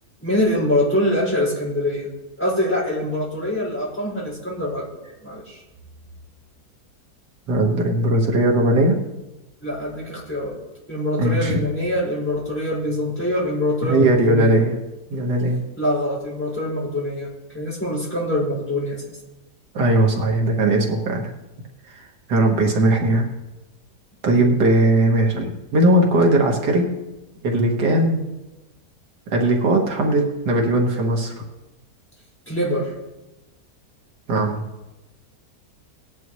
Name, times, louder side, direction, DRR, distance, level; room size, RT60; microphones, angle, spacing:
voice 1, 0.2-2.1 2.4-5.6 9.6-10.6 10.9-14.6 15.8-19.0 24.4-24.5 32.5-32.9, left 1 dB, 5° left, -6 dB, 5.5 m, -24 dB
voice 2, 7.5-9.0 11.2-11.6 13.8-14.8 15.1-15.6 19.7-21.3 21.9-22.0 22.3-23.3 24.2-26.9 27.4-28.2 29.3-31.3 34.3-34.6, right 1 dB, 85° right, 0 dB, 2.2 m, -19 dB
18.0 x 10.5 x 3.2 m, 1.0 s
omnidirectional pair, 1.8 m